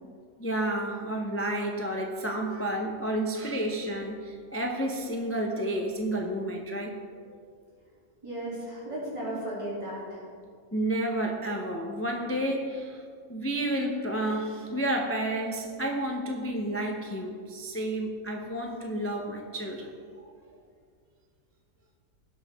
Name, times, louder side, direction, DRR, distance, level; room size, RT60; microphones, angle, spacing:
voice 1, 0.4-7.4 10.7-13.0 13.3-19.9 20.2-20.3, right 1 dB, 15° left, 1 dB, 0.6 m, -31 dB
voice 2, 8.2-10.2, right 1 dB, 20° right, -7 dB, 3.1 m, -35 dB
17.5 x 6.2 x 3.6 m, 2.1 s
omnidirectional pair, 1.5 m